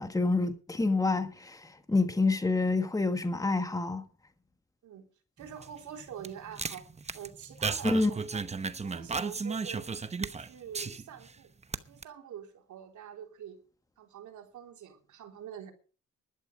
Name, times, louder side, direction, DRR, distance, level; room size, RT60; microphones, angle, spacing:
voice 1, 0.0-4.0 7.8-8.1, left 3 dB, 10° left, 1.6 m, -27 dB
sound 1, 5.4-11.3 11.6-12.0, right 4 dB, 20° right, 0.9 m, -35 dB
voice 2, 5.4-6.8 7.1-8.4 8.8-9.9 10.4-11.5 11.9-13.6 14.0-15.7, right 9 dB, 75° right, 3.4 m, -46 dB
12.0 x 12.0 x 5.2 m
cardioid pair, 90°, 30 cm